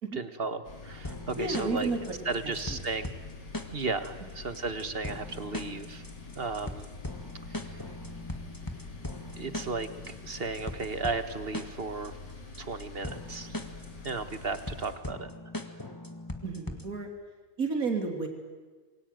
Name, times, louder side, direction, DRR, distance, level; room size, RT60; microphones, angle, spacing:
voice 1, 0.1-1.9 2.2-3.1 3.7-6.0 6.3-6.9 7.5-7.8 9.4-12.2 12.6-13.6 14.0-15.3, right 4 dB, 35° right, 10 dB, 1.6 m, -35 dB
sound 1, 0.6-14.9, left 4 dB, 75° left, 4.0 m, -46 dB
sound 2, 1.0-17.0, left 1 dB, 10° left, 1.7 m, -40 dB
voice 2, 1.4-2.0 2.7-2.8 16.4-17.1 17.6-18.3, right 4 dB, 55° right, 3 dB, 3.6 m, -31 dB
28.0 x 22.5 x 9.2 m, 1.4 s
omnidirectional pair, 1.8 m